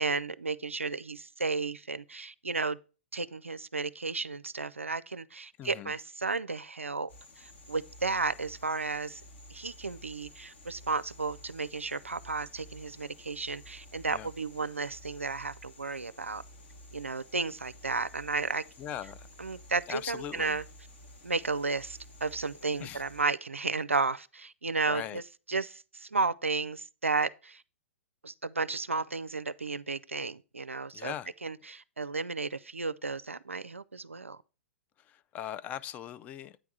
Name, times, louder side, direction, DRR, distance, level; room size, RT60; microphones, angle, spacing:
voice 1, 0.0-2.8 3.1-7.1 7.4-9.2 9.5-16.4 16.9-18.6 19.4-20.6 21.2-25.2 25.5-27.6 28.2-31.1 31.4-34.4, right 4 dB, 85° right, 0.4 m, -33 dB
voice 2, 5.6-5.9 14.1-14.3 18.8-19.3 19.9-20.6 22.8-23.0 24.9-25.2 30.9-31.3 35.0-36.6, left 10 dB, 20° left, 0.3 m, -40 dB
sound 1, 7.1-23.2, left 1 dB, 60° left, 1.8 m, -53 dB
8.9 x 3.5 x 5.8 m
figure-of-eight pair, 110°, 7 cm